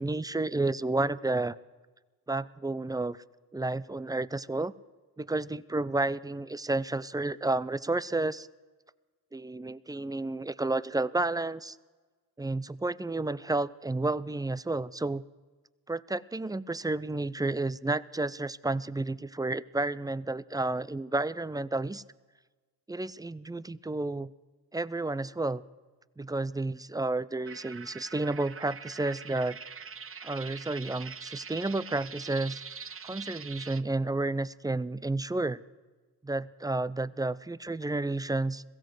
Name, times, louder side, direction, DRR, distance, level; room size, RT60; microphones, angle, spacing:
voice 1, 0.0-1.6 2.3-3.2 3.5-4.7 5.2-8.5 9.3-11.8 12.4-15.2 15.9-22.0 22.9-24.3 24.7-25.6 26.2-29.6 30.2-32.6 33.0-35.6 36.2-38.6, right 2 dB, 10° right, 19 dB, 0.6 m, -31 dB
sound 1, 27.5-33.8, right 6 dB, 30° right, 1.0 m, -44 dB
21.5 x 15.5 x 7.8 m, 1.3 s
supercardioid pair, 65°, 46 cm